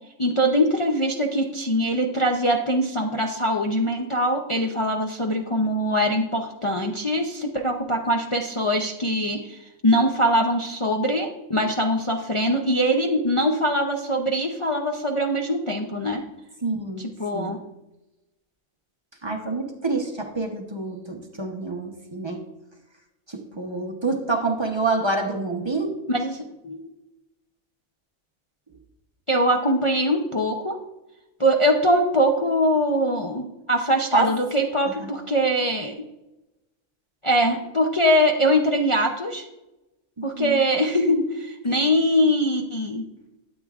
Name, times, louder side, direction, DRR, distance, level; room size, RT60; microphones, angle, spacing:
voice 1, 0.2-9.6 9.8-16.2 17.0-17.6 26.1-26.9 29.3-30.8 31.4-35.9 37.2-39.4 40.2-43.0, equal, 40° left, 0 dB, 0.4 m, -22 dB
voice 2, 16.6-17.1 17.3-17.5 19.2-22.4 23.3-26.0 34.1-34.3 35.0-35.1 40.2-40.6, right 3 dB, 25° right, 3 dB, 0.8 m, -27 dB
12.5 x 8.2 x 2.4 m, 0.97 s
omnidirectional pair, 1.5 m